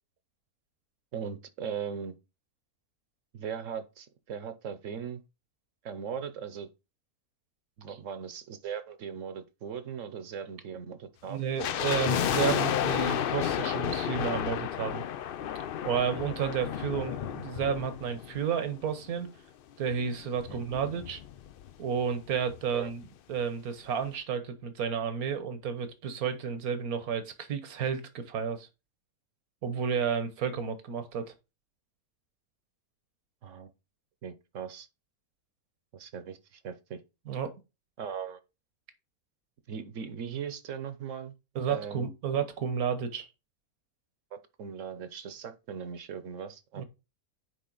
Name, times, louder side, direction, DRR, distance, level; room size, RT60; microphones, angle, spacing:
voice 1, 1.1-2.1 3.3-5.2 5.8-6.7 7.8-11.4 20.5-20.6 22.7-22.9 33.4-33.7 34.2-34.9 35.9-37.0 38.0-38.4 39.7-41.3 41.7-42.1 44.3-46.8, right 7 dB, 60° right, 1.1 m, -39 dB
voice 2, 11.3-15.0 15.8-19.3 19.8-21.2 21.8-28.7 29.6-31.3 37.3-37.5 41.5-43.3 46.8-46.9, right 7 dB, 80° right, 1.5 m, -31 dB
sound 1, 11.6-18.9 19.1-19.2 19.9-21.7 22.0-22.1 22.3-22.6 23.0-23.1, left 10 dB, 85° left, 0.4 m, -32 dB
9.4 x 3.7 x 3.9 m
omnidirectional pair, 1.5 m